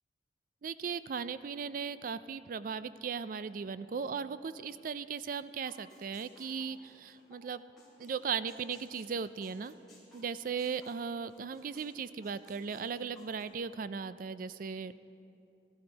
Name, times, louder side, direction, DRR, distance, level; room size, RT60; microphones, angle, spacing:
voice 1, 0.6-7.6 8.0-9.7 10.1-14.9, right 6 dB, 45° right, 14 dB, 0.3 m, -37 dB
sound 1, 5.6-7.4 7.8-8.1 8.5-11.9 12.2-13.4, left 1 dB, ahead, 3.5 m, -59 dB
16.0 x 13.5 x 3.9 m, 2.7 s
head